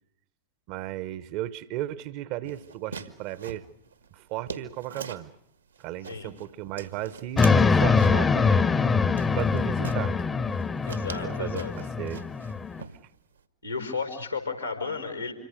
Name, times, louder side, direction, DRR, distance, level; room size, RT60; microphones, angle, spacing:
voice 1, 0.7-3.6 4.1-5.3 5.8-8.7 9.3-10.2 11.1-12.2, right 14 dB, 45° right, 0.9 m, -35 dB
sound 1, 2.4-5.3 5.7-6.5 6.7-8.3 8.8-8.9 9.2-10.1 10.5-10.6 10.9-12.5 12.8-13.4, right 5 dB, 75° right, 1.5 m, -41 dB
sound 2, 7.4-12.8, left 5 dB, 15° left, 0.9 m, -23 dB
voice 2, 10.8-11.7 13.6-15.3, left 4 dB, 90° left, 4.4 m, -33 dB
26.0 x 24.0 x 6.4 m
figure-of-eight pair, 90°, 0 cm